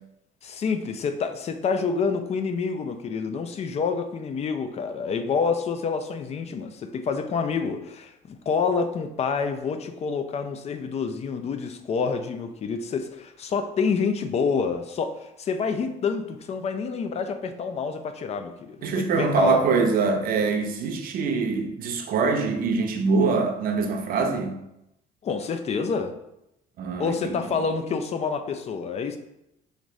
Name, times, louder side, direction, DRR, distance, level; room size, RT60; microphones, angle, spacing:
voice 1, 0.4-19.6 25.2-26.1 27.0-29.2, left 5 dB, 40° left, 8 dB, 0.4 m, -28 dB
voice 2, 18.8-24.6 26.8-27.4, right 4 dB, 60° right, 4 dB, 0.7 m, -24 dB
5.0 x 2.6 x 3.1 m, 0.85 s
cardioid pair, 110°, 17 cm